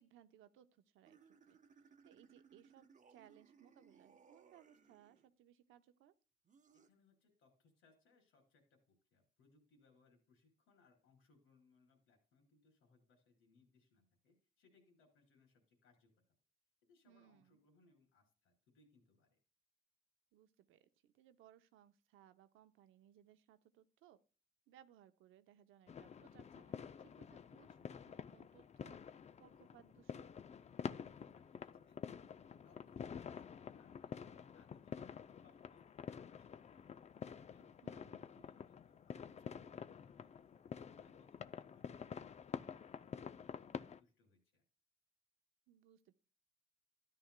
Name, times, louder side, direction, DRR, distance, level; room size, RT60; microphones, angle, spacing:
voice 1, 0.0-1.6 2.0-6.1 17.0-17.6 20.3-24.2 24.7-30.3 37.8-38.3 45.7-46.1, right 11 dB, 90° right, 10 dB, 0.7 m, -66 dB
sound 1, 1.0-5.3 6.4-6.9, right 5 dB, 40° right, 0.9 m, -66 dB
voice 2, 6.7-16.1 16.9-19.4 31.0-32.3 32.6-42.6 43.0-44.6, left 3 dB, 90° left, 2 dB, 4.1 m, -72 dB
sound 2, 25.9-44.0, left 7 dB, 35° left, 0.4 m, -49 dB
13.0 x 10.5 x 2.2 m, 0.38 s
cardioid pair, 90°, 20 cm